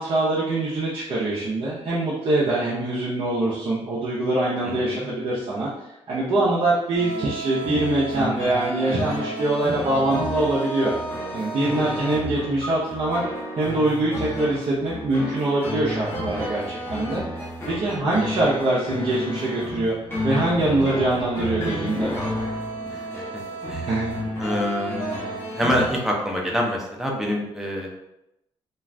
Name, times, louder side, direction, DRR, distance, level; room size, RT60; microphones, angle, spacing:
voice 1, 0.0-5.7 6.1-10.9 11.3-13.2 13.6-17.2 17.7-19.9 20.2-22.1 23.9-24.1, right 2 dB, 50° right, -7 dB, 0.7 m, -23 dB
voice 2, 4.6-5.1 11.7-11.9 17.9-18.3 22.8-23.4 23.7-24.0 24.4-28.0, equal, 5° right, -1 dB, 0.6 m, -27 dB
sound 1, 6.9-26.0, equal, 20° left, 1.0 m, -31 dB
2.4 x 2.4 x 3.3 m, 0.86 s
cardioid pair, 115°, 11 cm